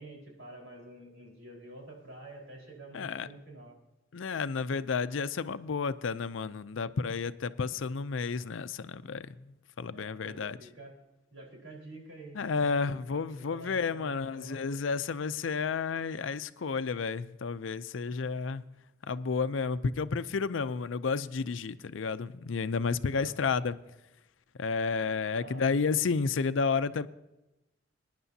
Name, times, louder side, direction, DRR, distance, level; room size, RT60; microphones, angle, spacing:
voice 1, 0.0-3.8 9.9-10.9 11.3-14.7 18.2-18.5 23.1-23.5 25.3-25.7, right 2 dB, 80° right, 4.4 m, -48 dB
voice 2, 2.9-3.3 4.1-10.6 12.3-18.6 19.1-23.8 24.6-27.1, left 5 dB, 85° left, 0.5 m, -31 dB
22.0 x 10.5 x 2.8 m
head